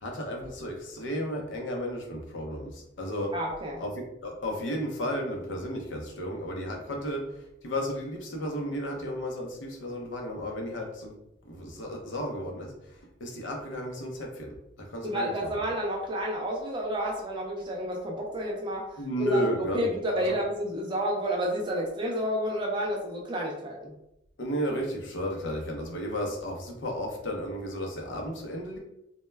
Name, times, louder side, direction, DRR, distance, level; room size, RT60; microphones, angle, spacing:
voice 1, 0.0-3.3 3.8-7.2 7.6-11.1 11.5-12.7 13.2-14.5 14.9-15.3 19.0-19.9 20.3-20.4 24.4-28.8, equal, 75° left, 1 dB, 0.6 m, -33 dB
voice 2, 3.3-3.8 15.0-18.9 19.2-23.9, equal, 25° right, -1 dB, 0.4 m, -30 dB
2.1 x 2.1 x 3.2 m, 0.84 s
head